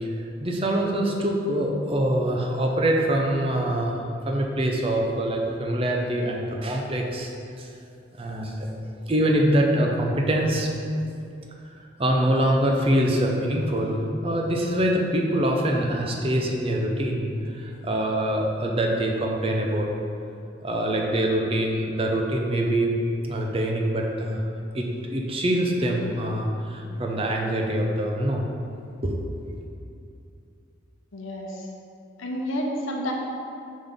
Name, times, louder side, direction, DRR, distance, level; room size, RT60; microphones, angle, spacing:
voice 1, 0.4-7.3 7.6-7.7 8.2-8.7 9.1-10.7 12.0-19.9 20.6-23.0 23.3-24.4 24.7-28.5 29.0-29.2, right 1 dB, 30° right, 0 dB, 0.5 m, -24 dB
voice 2, 31.1-31.7 32.2-33.1, equal, 85° left, -1 dB, 0.8 m, -30 dB
5.6 x 5.3 x 3.5 m, 2.6 s
head